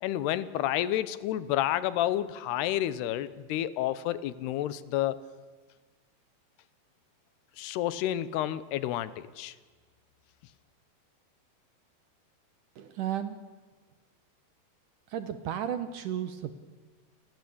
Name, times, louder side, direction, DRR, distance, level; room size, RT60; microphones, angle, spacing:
voice 1, 0.0-5.2 7.6-9.5, left 13 dB, 85° left, 16 dB, 3.0 m, -30 dB
voice 2, 12.8-13.4 15.1-16.5, right 10 dB, 70° right, 11 dB, 2.2 m, -33 dB
29.5 x 20.0 x 8.5 m, 1.4 s
omnidirectional pair, 4.6 m